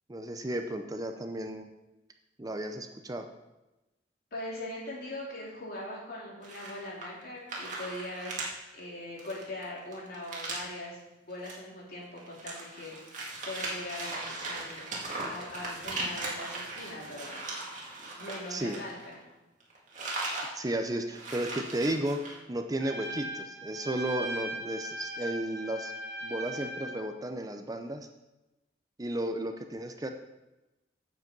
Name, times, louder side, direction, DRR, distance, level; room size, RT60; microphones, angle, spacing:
voice 1, 0.1-1.7 2.4-3.3 18.5-18.8 20.5-25.9 26.2-28.1 29.0-30.1, right 1 dB, 20° right, 6 dB, 0.6 m, -33 dB
voice 2, 4.3-11.0 11.3-14.8 15.3-17.5 18.2-19.2, left 1 dB, 60° left, -5 dB, 3.5 m, -41 dB
sound 1, 6.4-7.2 7.5-8.5 8.8-8.9 9.2-10.8 11.3-11.5 11.9-19.3 19.6-20.5 20.8-20.9 21.1-22.4, right 2 dB, 45° right, 2.2 m, -38 dB
Trumpet, 22.8-27.0, right 1 dB, 70° right, 2.1 m, -39 dB
8.7 x 7.7 x 5.4 m, 1.0 s
head